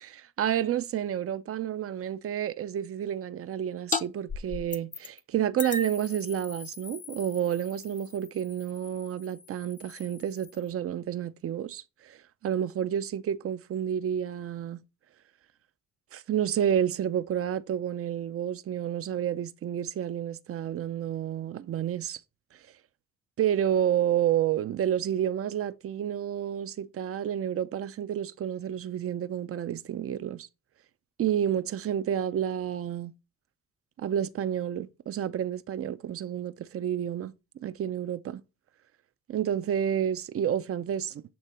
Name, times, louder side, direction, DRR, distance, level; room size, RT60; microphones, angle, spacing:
voice 1, 0.1-14.8 16.1-22.2 23.4-30.5 31.2-33.1 34.0-38.4 39.3-41.2, right 10 dB, 50° right, 0.6 m, -30 dB
sound 1, 3.9-4.0 4.3-5.2 5.6-10.7, left 4 dB, 25° left, 0.7 m, -38 dB
8.6 x 3.6 x 4.2 m
cardioid pair, 90°, 30 cm